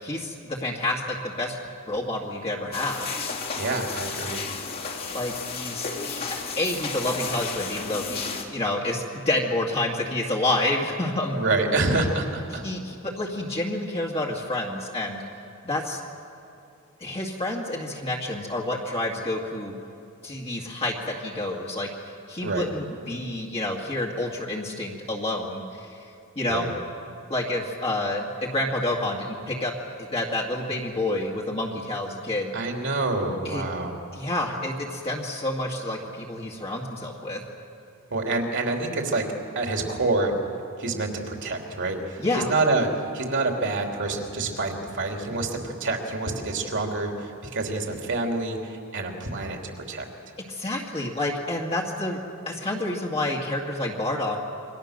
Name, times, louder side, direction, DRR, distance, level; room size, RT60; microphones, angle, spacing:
voice 1, 0.0-1.6 1.9-3.6 5.1-11.4 12.5-15.2 15.6-16.0 17.0-19.7 20.2-21.9 22.3-25.9 26.4-26.7 27.3-29.7 30.0-32.5 33.4-33.6 34.1-37.4 42.2-42.5 50.5-52.2 52.5-54.4, left 1 dB, 25° left, -3 dB, 2.1 m, -29 dB
sound 1, 2.7-8.4, left 5 dB, 45° left, 2.8 m, -33 dB
voice 2, 3.5-4.5 11.3-12.6 22.4-22.7 26.5-26.7 32.5-34.0 38.1-39.2 39.5-40.3 40.8-42.9 43.1-50.1, right 2 dB, 55° right, 2 dB, 3.1 m, -27 dB
28.0 x 24.0 x 6.7 m, 2.6 s
head